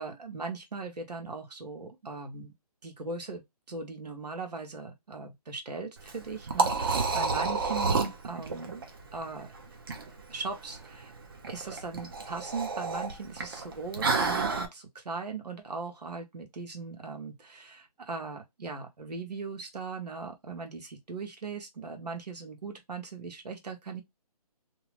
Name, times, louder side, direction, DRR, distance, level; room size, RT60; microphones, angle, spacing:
voice 1, 0.0-2.5 2.8-8.8 9.1-9.5 10.3-11.1 11.5-24.0, right 4 dB, 85° right, 1.1 m, -39 dB
Liquid, 6.0-14.7, right 4 dB, 35° right, 0.5 m, -31 dB
2.8 x 2.1 x 3.1 m
hypercardioid pair, 165°, 20 cm